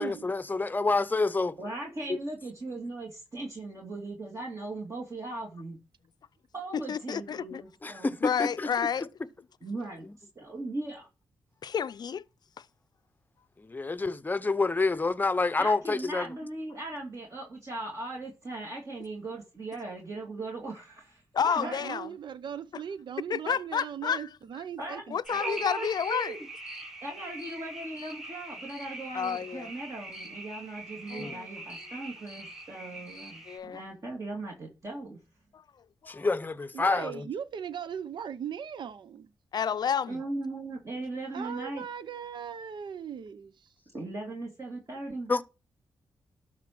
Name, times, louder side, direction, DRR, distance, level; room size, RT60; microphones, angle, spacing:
voice 1, 0.0-1.5 2.1-2.2 7.8-8.7 10.1-10.2 13.6-16.3 31.2-31.3 36.1-37.3 45.3-45.4, left 3 dB, 20° left, 0.7 m, -28 dB
voice 2, 1.4-5.8 6.5-8.2 9.6-10.1 10.4-11.1 15.6-21.9 24.8-25.0 25.4-26.4 27.0-35.2 40.1-41.8 43.9-45.3, right 2 dB, 40° right, 2.6 m, -38 dB
voice 3, 6.7-7.6 8.2-9.1 11.6-12.2 12.6-12.7 21.3-22.1 23.3-24.3 25.1-26.4 29.1-29.7 31.1-31.5 33.5-33.8 35.5-35.6 36.0-36.3 39.5-40.2, left 7 dB, 55° left, 0.5 m, -30 dB
voice 4, 21.6-25.6 36.7-39.3 41.3-43.7, right 8 dB, 65° right, 0.7 m, -39 dB
sound 1, 25.3-33.6, right 2 dB, 10° right, 6.0 m, -42 dB
12.5 x 4.5 x 6.0 m
cardioid pair, 95°, 8 cm